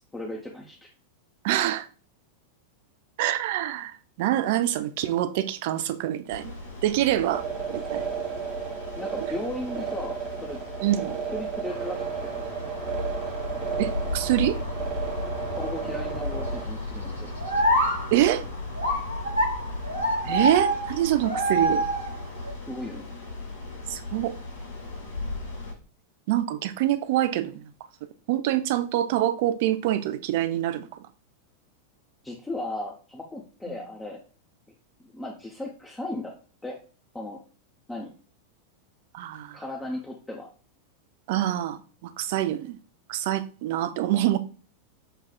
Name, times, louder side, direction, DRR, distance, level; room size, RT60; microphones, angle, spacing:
voice 1, 0.1-0.9 9.0-10.6 11.3-12.4 15.6-17.3 22.7-23.1 32.2-34.2 35.0-36.4 36.6-36.8 37.1-37.4 37.9-38.1 39.5-40.5, left 1 dB, 10° left, 0.6 m, -36 dB
voice 2, 1.4-1.9 3.2-6.5 6.8-8.0 10.8-11.2 13.8-14.6 18.1-18.4 20.2-21.9 23.9-24.4 26.3-27.7 28.3-31.1 39.1-39.6 41.3-42.8 43.1-44.4, right 13 dB, 50° right, 0.4 m, -25 dB
sound 1, 6.3-25.7, left 3 dB, 70° left, 1.2 m, -36 dB
sound 2, 7.3-16.6, right 8 dB, 30° right, 0.8 m, -33 dB
sound 3, 11.7-22.5, equal, 85° right, 0.9 m, -29 dB
6.7 x 2.4 x 2.3 m
figure-of-eight pair, 90°, 0 cm